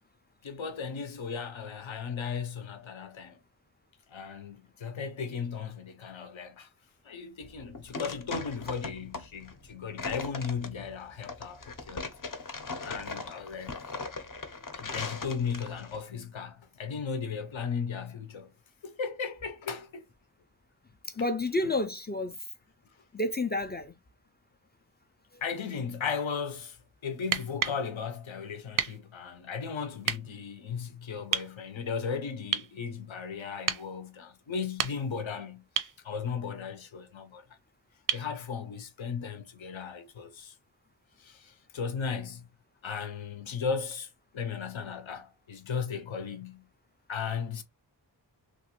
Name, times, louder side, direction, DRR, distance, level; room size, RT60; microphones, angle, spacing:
voice 1, 0.4-3.4 4.1-6.7 7.0-12.1 12.8-13.8 14.7-18.5 18.8-20.1 25.4-26.8 27.0-37.4 38.1-40.5 41.2-42.5 42.8-46.6 47.1-47.6, left 6 dB, 75° left, 0.7 m, -36 dB
sound 1, 7.4-16.0, left 3 dB, 45° left, 0.7 m, -39 dB
voice 2, 21.2-22.3 23.1-23.9, left 2 dB, 25° left, 0.3 m, -30 dB
sound 2, 27.2-27.8 28.8-29.0 30.0-30.2 31.3-31.5 32.5-32.7 33.7-33.9 34.6-35.2 35.8-36.0 38.1-38.3 40.2-40.3, right 7 dB, 45° right, 0.4 m, -31 dB
3.1 x 2.4 x 2.9 m
wide cardioid pair, 75°, 46 cm